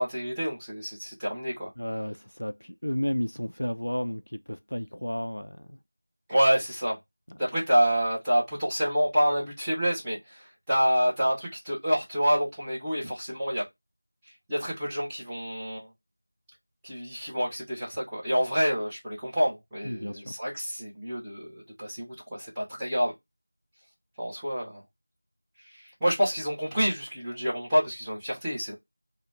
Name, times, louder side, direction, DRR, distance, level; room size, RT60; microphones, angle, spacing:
voice 1, 0.0-1.7 6.3-7.0 7.4-13.6 14.5-15.9 16.8-23.1 24.2-24.8 25.7-28.7, equal, 5° right, 0.6 m, -27 dB
voice 2, 1.8-5.8 7.3-7.4 19.8-20.3, equal, 70° left, 0.3 m, -32 dB
2.4 x 2.0 x 2.9 m
figure-of-eight pair, 175°, 0 cm